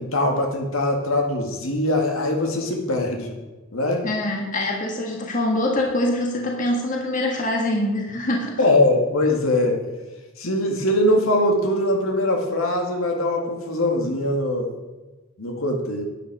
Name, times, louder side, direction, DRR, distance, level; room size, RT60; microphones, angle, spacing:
voice 1, 0.0-3.4 3.7-4.1 8.6-9.8 10.4-14.7 15.4-16.0, left 1 dB, 70° left, 2 dB, 2.1 m, -22 dB
voice 2, 4.0-8.6, left 1 dB, 35° left, 0 dB, 1.7 m, -24 dB
11.5 x 9.2 x 4.9 m, 1.2 s
head